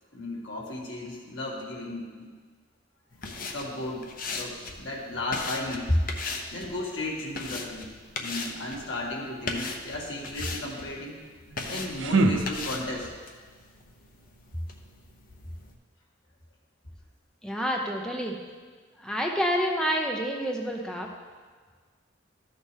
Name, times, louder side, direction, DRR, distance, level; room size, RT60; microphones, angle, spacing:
voice 1, 0.1-2.3 3.5-6.0 6.5-7.9 8.2-11.2 11.7-13.1, left 1 dB, 85° left, -3 dB, 2.0 m, -34 dB
sound 1, 3.1-15.7, left 3 dB, 50° left, 0.8 m, -39 dB
sound 2, 11.5-13.2, right 2 dB, 90° right, 0.6 m, -27 dB
voice 2, 17.4-18.4 19.0-21.1, equal, 5° left, 0 dB, 0.7 m, -28 dB
13.0 x 6.4 x 3.5 m, 1.5 s
head